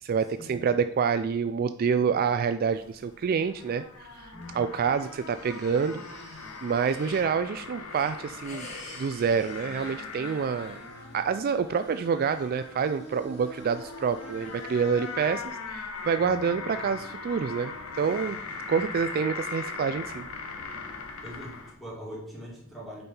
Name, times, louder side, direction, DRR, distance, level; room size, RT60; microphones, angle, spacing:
voice 1, 0.0-4.3 4.5-8.7 9.0-10.8 11.1-18.4 18.7-20.2, right 6 dB, 45° right, 10 dB, 0.3 m, -27 dB
sound 1, 2.7-21.7, left 4 dB, 90° left, 1.1 m, -40 dB
voice 2, 4.3-4.7 16.1-16.5 18.7-18.8 21.2-23.0, equal, ahead, -7 dB, 3.1 m, -42 dB
sound 2, 4.7-7.3 7.7-10.6, left 2 dB, 30° left, 2.2 m, -48 dB
sound 3, 9.2-15.5, left 1 dB, 50° left, 3.1 m, -47 dB
8.5 x 5.5 x 4.4 m, 0.80 s
head